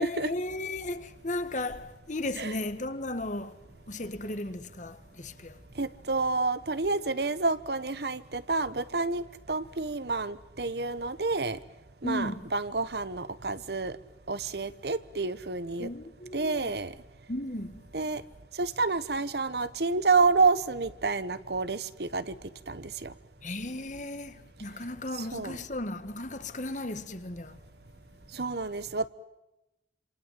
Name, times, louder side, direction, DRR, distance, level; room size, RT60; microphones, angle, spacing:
voice 1, 0.0-3.6 3.9-5.6 12.0-12.5 15.8-16.7 17.3-17.8 23.4-27.6, left 1 dB, 45° left, 1.7 m, -35 dB
voice 2, 5.8-11.6 12.0-14.0 14.3-15.9 16.3-16.9 17.9-18.2 18.6-22.3 22.7-23.1 25.2-25.6 28.3-29.1, right 3 dB, 60° right, 1.2 m, -29 dB
27.5 x 26.5 x 7.6 m
head